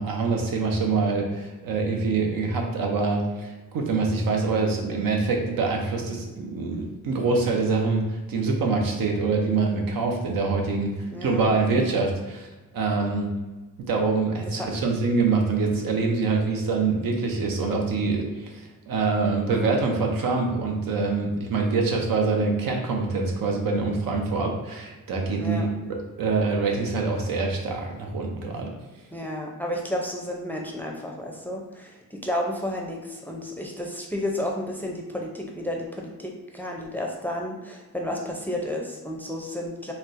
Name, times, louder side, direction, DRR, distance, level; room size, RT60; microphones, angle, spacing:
voice 1, 0.0-12.5 12.7-13.3 13.8-28.7, right 4 dB, 80° right, 1 dB, 0.7 m, -25 dB
voice 2, 11.1-11.5 11.9-12.1 14.5-14.8 25.4-25.7 29.1-39.9, left 1 dB, 5° left, 0 dB, 0.5 m, -32 dB
4.2 x 2.0 x 2.5 m, 1.2 s
cardioid pair, 80°, 34 cm